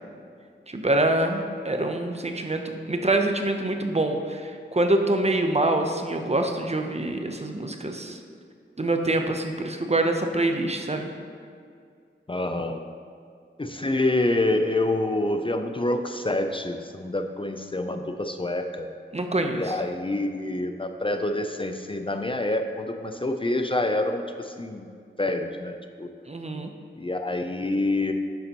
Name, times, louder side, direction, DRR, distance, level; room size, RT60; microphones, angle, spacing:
voice 1, 0.7-8.2 8.8-11.1 19.1-19.7 26.3-26.7, right 2 dB, 35° right, 5 dB, 0.7 m, -25 dB
voice 2, 12.3-12.8 13.6-18.9 19.5-24.9 25.2-26.1 27.0-28.1, left 2 dB, 25° left, 6 dB, 0.5 m, -27 dB
10.5 x 7.0 x 3.0 m, 2.2 s
wide cardioid pair, 55°, 20 cm